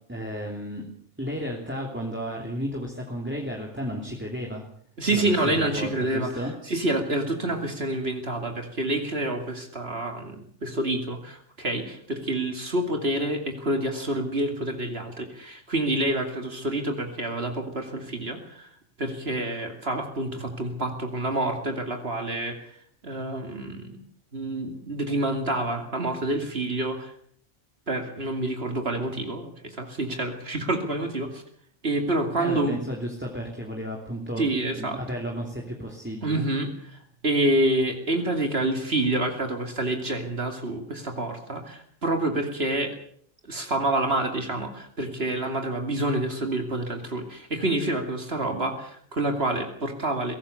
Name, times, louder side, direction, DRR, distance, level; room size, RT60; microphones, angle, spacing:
voice 1, 0.1-0.8 1.2-4.6 5.1-6.5 32.4-34.4 34.7-36.5, equal, 10° right, 0 dB, 3.0 m, -33 dB
voice 2, 5.0-6.3 6.7-18.7 19.0-22.6 23.0-24.0 24.3-27.1 27.9-31.4 31.8-32.8 34.4-35.0 36.2-43.0 43.5-50.3, right 1 dB, 55° right, 4 dB, 2.9 m, -28 dB
22.5 x 18.0 x 6.9 m, 0.62 s
omnidirectional pair, 1.2 m